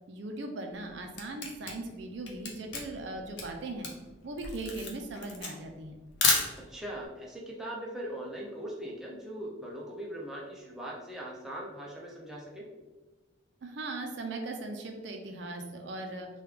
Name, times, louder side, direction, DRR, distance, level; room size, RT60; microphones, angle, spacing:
voice 1, 0.1-3.9 4.2-5.9 13.6-16.3, right 2 dB, 65° right, 4 dB, 0.4 m, -39 dB
Camera, 0.7-7.0, left 4 dB, 60° left, 0.6 m, -32 dB
voice 2, 6.5-12.6, right 1 dB, ahead, -4 dB, 0.4 m, -40 dB
3.2 x 2.3 x 3.3 m, 1.2 s
head